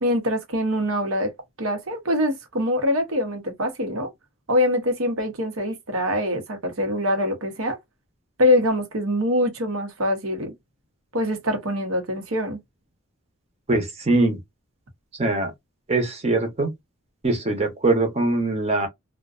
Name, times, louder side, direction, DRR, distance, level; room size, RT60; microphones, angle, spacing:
voice 1, 0.0-1.3 1.6-4.1 4.5-7.8 8.4-10.5 11.1-12.6, left 1 dB, 75° right, 0.8 m, -24 dB
voice 2, 13.7-14.4 15.2-15.5 15.9-16.7 17.2-18.9, right 2 dB, 30° right, 0.8 m, -22 dB
2.4 x 2.2 x 2.4 m
head